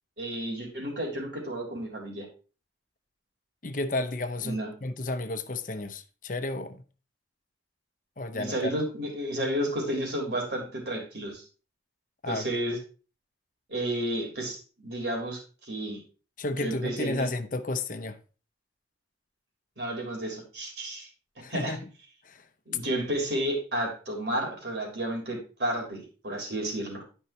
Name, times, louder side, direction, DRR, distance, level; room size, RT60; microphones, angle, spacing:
voice 1, 0.2-2.3 4.4-4.7 8.3-11.4 12.3-12.8 13.7-16.0 16.6-17.3 19.8-21.1 21.5-21.8 22.7-27.0, right 1 dB, 60° right, 3.5 m, -32 dB
voice 2, 3.6-6.8 8.2-8.7 12.2-12.5 16.4-18.2 21.4-21.9 22.2-22.5, left 2 dB, 45° left, 0.8 m, -32 dB
11.5 x 5.4 x 4.3 m
head